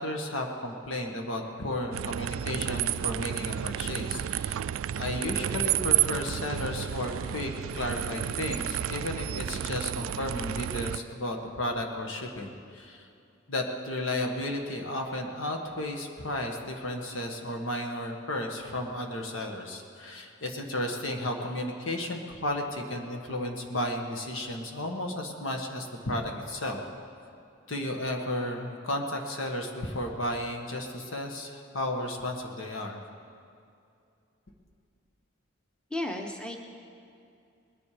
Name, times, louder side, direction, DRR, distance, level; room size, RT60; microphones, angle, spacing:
voice 1, 0.0-4.6 4.9-13.1 13.5-26.8 27.7-33.0, left 1 dB, 75° left, 2 dB, 1.6 m, -33 dB
sound 1, 1.9-11.0, right 11 dB, 80° right, 0.3 m, -31 dB
voice 2, 35.9-36.6, left 1 dB, 5° left, 2 dB, 0.8 m, -33 dB
20.5 x 10.5 x 5.0 m, 2.5 s
head